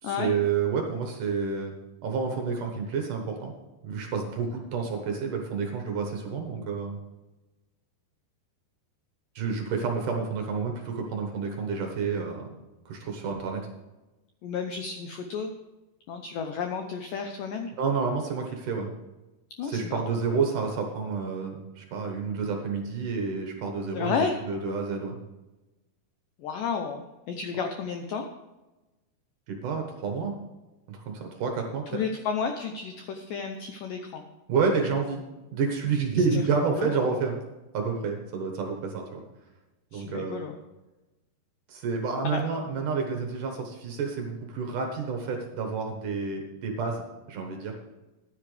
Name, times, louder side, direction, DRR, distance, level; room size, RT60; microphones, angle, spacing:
voice 1, 0.0-1.8 2.0-3.5 3.8-7.0 9.4-12.5 12.9-13.7 17.8-18.9 19.6-25.2 29.5-30.4 30.9-32.0 34.5-35.2 35.5-37.4 37.7-39.2 39.9-40.4 41.7-47.8, right 5 dB, 60° right, 2 dB, 2.4 m, -29 dB
voice 2, 14.4-15.5 16.1-17.7 19.6-20.0 23.9-24.4 26.4-28.3 31.9-34.2 36.3-36.9 39.9-40.6 42.2-42.4, left 6 dB, 80° left, 4 dB, 1.9 m, -32 dB
14.5 x 10.0 x 3.4 m, 1.1 s
omnidirectional pair, 4.9 m